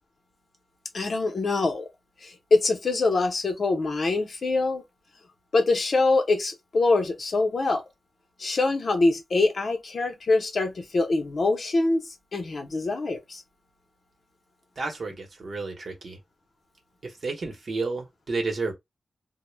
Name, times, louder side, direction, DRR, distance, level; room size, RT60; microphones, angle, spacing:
voice 1, 0.9-1.9 2.2-4.8 5.5-7.8 8.4-12.0 12.3-13.4, left 3 dB, 50° left, 0.6 m, -24 dB
voice 2, 14.8-16.2 17.0-18.7, right 3 dB, 55° right, 0.8 m, -31 dB
2.1 x 2.0 x 3.1 m
wide cardioid pair, 130°, 0 cm